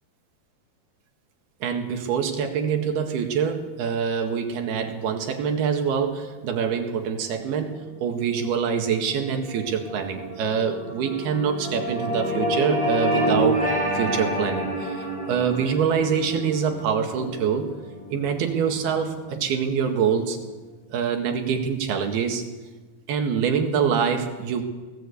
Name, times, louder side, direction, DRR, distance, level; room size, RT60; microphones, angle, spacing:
voice 1, 1.6-13.6 13.9-17.7 18.1-20.4 20.9-22.5 23.1-24.6, right 7 dB, 70° right, 4 dB, 3.7 m, -25 dB
sound 1, 7.7-20.1, equal, 10° left, 4.3 m, -29 dB
19.0 x 16.5 x 8.3 m, 1.2 s
omnidirectional pair, 4.7 m